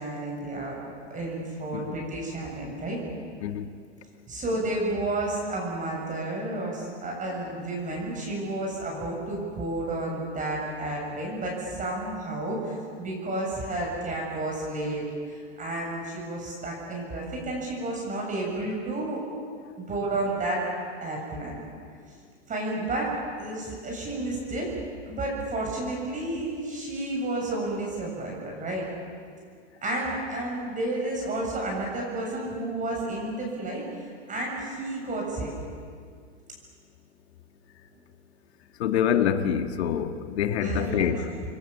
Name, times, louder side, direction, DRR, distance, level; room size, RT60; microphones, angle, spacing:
voice 1, 0.0-3.0 4.3-19.2 19.8-20.6 21.0-21.5 22.5-23.1 23.4-24.7 25.1-28.8 29.8-35.5 40.6-41.4, right 2 dB, 20° right, -2 dB, 7.3 m, -31 dB
voice 2, 38.8-41.2, left 9 dB, 65° left, 7 dB, 2.0 m, -26 dB
28.5 x 22.5 x 7.3 m, 2.1 s
hypercardioid pair, 115°, 35 cm